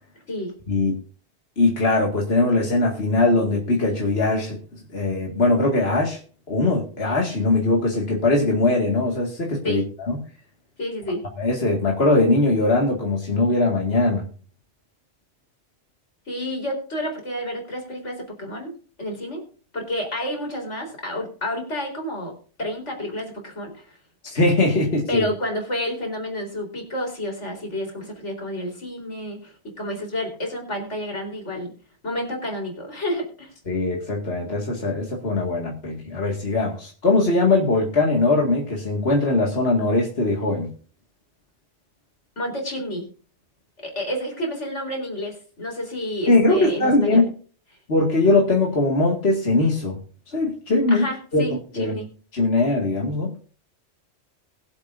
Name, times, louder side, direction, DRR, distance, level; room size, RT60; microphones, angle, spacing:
voice 1, 0.7-1.0 1.6-6.2 6.5-10.2 11.4-14.2 24.3-25.3 33.7-40.7 46.3-47.3 47.9-50.0 50.3-51.1 51.3-51.5 51.8-52.0 52.3-53.4, left 2 dB, 60° left, -1 dB, 2.3 m, -21 dB
voice 2, 10.8-11.2 16.3-18.7 19.0-19.4 19.7-22.3 22.6-23.9 25.1-31.7 32.0-33.5 42.4-43.1 43.8-47.2 50.9-52.1, left 1 dB, 85° left, 1 dB, 4.5 m, -30 dB
22.0 x 7.9 x 2.6 m, 0.40 s
omnidirectional pair, 1.2 m